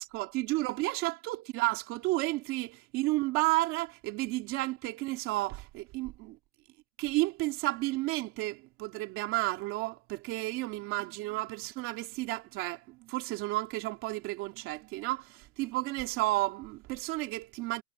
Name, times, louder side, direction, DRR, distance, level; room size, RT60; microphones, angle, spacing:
voice 1, 0.0-6.4 7.0-17.8, right 20 dB, 30° right, 2.7 m, -32 dB
hypercardioid pair, 160°, 44 cm